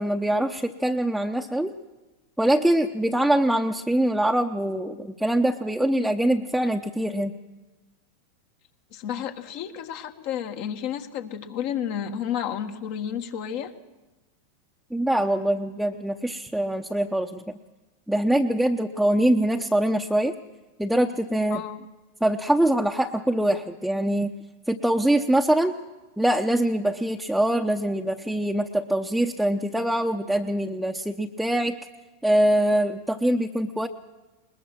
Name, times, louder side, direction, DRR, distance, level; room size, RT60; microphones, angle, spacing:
voice 1, 0.0-1.7 2.4-7.3 14.9-17.6 18.1-20.3 20.8-21.6 22.2-24.3 24.7-25.7 26.2-31.8 32.2-33.9, right 1 dB, ahead, 0 dB, 0.9 m, -23 dB
voice 2, 8.9-13.7 21.5-21.8, left 9 dB, 55° left, 6 dB, 1.6 m, -31 dB
21.5 x 20.0 x 6.1 m, 1.1 s
hypercardioid pair, 100°, 0 cm